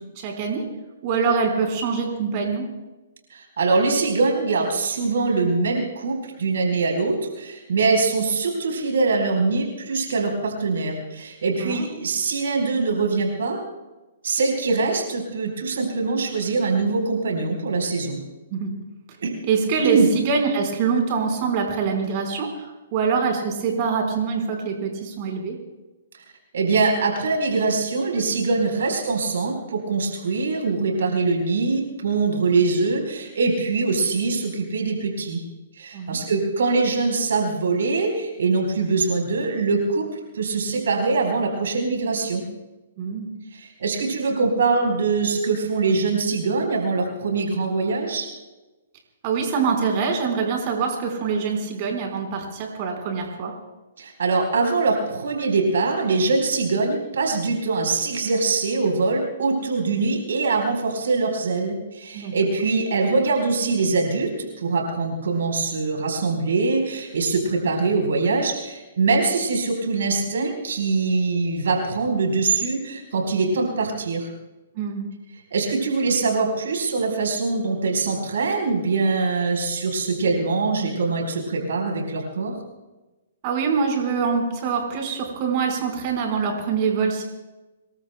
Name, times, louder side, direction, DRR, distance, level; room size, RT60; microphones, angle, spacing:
voice 1, 0.2-0.7 1.0-2.7 11.6-11.9 18.5-18.7 19.4-25.6 35.9-36.2 43.0-43.3 49.2-53.5 62.1-62.3 74.7-75.1 83.4-87.2, right 5 dB, 40° right, 2 dB, 4.5 m, -24 dB
voice 2, 3.3-13.6 14.2-18.2 19.2-19.3 19.8-20.1 26.5-35.4 35.8-42.4 43.5-48.3 54.0-74.3 75.5-82.5, right 3 dB, 70° right, 2 dB, 4.3 m, -23 dB
27.0 x 21.5 x 2.3 m, 1.1 s
figure-of-eight pair, 125°, 0 cm